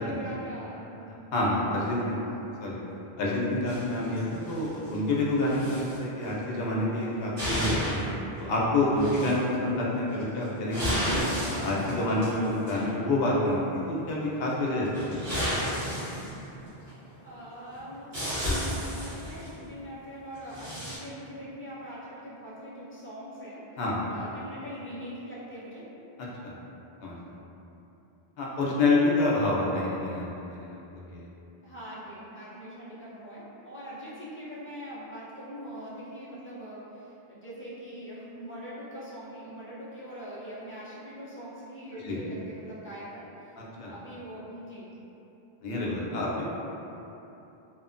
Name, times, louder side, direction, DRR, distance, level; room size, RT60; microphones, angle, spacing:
voice 1, 0.0-1.1 1.9-2.3 17.2-23.6 24.1-25.9 31.6-43.6 43.8-44.9, equal, 20° left, -10 dB, 0.4 m, -42 dB
voice 2, 1.3-2.2 2.6-2.7 3.2-8.0 8.4-11.0 11.4-14.9 15.6-15.7 23.8-24.1 26.4-26.5 27.0-27.2 28.4-31.3 42.0-42.2 43.6-43.9 45.6-46.5, left 2 dB, 75° left, -4 dB, 0.8 m, -28 dB
sound 1, 3.7-5.0 5.4-6.0 6.2-6.4 7.0-8.1 8.3-8.4 8.9-9.5 10.2-12.9 14.9-16.9 17.7-17.8 18.1-19.5 20.4-21.0, equal, 80° right, 1.3 m, -32 dB
2.8 x 2.1 x 2.4 m, 2.9 s
omnidirectional pair, 1.0 m